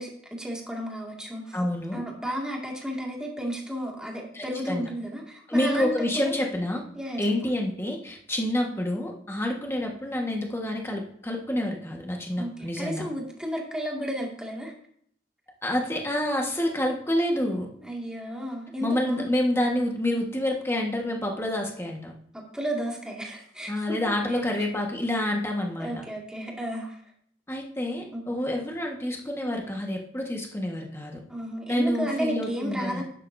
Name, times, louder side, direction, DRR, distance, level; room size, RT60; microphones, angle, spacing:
voice 1, 0.0-1.6 1.9-6.4 6.9-7.3 12.3-14.7 17.8-19.3 22.3-23.7 24.3-24.4 25.8-27.0 28.1-28.2 31.3-33.0, equal, 5° right, -2 dB, 2.1 m, -33 dB
voice 2, 1.5-2.0 4.3-4.9 5.5-6.8 7.2-13.0 15.6-17.7 18.8-22.1 23.7-25.9 27.5-31.2 31.7-33.0, left 1 dB, 15° left, 1 dB, 1.5 m, -28 dB
12.0 x 9.7 x 2.7 m, 0.65 s
head